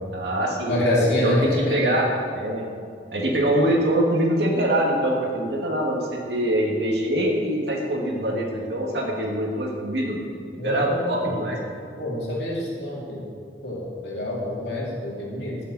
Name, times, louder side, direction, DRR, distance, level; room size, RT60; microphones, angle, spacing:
voice 1, 0.1-2.1 2.3-2.6 3.1-10.2 10.6-11.6, right 1 dB, 70° right, -2 dB, 2.3 m, -24 dB
voice 2, 0.7-1.9 10.6-11.4 12.0-13.2 13.6-15.6, left 1 dB, 70° left, -6 dB, 3.0 m, -26 dB
17.5 x 7.5 x 4.3 m, 2.3 s
head